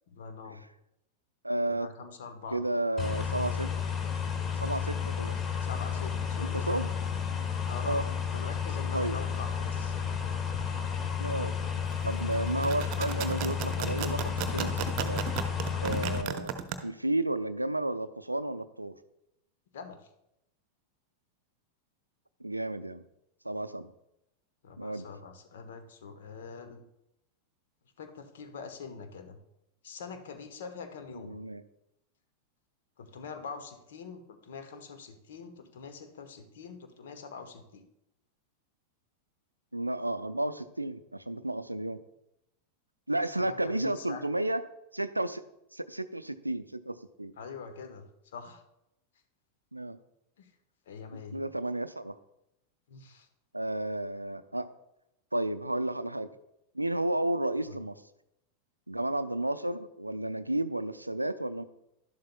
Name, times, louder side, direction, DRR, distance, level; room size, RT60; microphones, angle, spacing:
voice 1, 0.1-0.6 1.7-2.6 5.6-6.8 7.6-10.0 19.7-20.1 24.6-26.8 28.0-29.4 29.8-31.4 33.0-37.8 43.4-44.2 47.4-48.6 50.4-50.5 50.9-51.4 52.9-53.3 57.6-57.8, left 5 dB, 60° left, 7 dB, 1.2 m, -44 dB
voice 2, 1.4-1.9 2.5-3.7 4.6-5.4 6.4-6.9 7.8-8.1 8.9-9.2 11.2-11.5 12.0-15.2 15.8-19.0 22.4-23.0 23.4-23.9 24.8-25.1 31.2-31.6 39.7-42.0 43.1-44.6 44.9-45.4 45.7-47.3 49.7-50.0 51.3-52.2 53.5-54.7 55.3-56.3 56.7-58.0 58.9-61.6, right 1 dB, 85° right, 13 dB, 0.4 m, -32 dB
sound 1, 3.0-16.2, left 7 dB, 25° left, 1.2 m, -32 dB
sound 2, 12.5-16.8, right 9 dB, 40° right, 0.8 m, -34 dB
11.5 x 11.5 x 2.3 m, 0.86 s
figure-of-eight pair, 90°, 0 cm